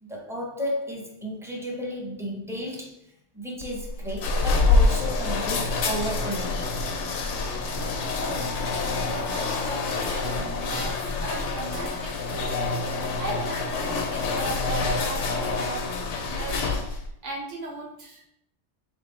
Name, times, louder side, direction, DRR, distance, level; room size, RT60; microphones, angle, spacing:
voice 1, 0.0-6.6, equal, 5° right, -2 dB, 0.6 m, -33 dB
sound 1, 3.6-17.1, left 3 dB, 90° left, 0.9 m, -26 dB
voice 2, 8.2-8.5 9.0-12.7 13.2-15.9 16.3-18.3, right 2 dB, 80° right, -2 dB, 1.3 m, -37 dB
3.8 x 3.5 x 3.1 m, 0.74 s
omnidirectional pair, 1.2 m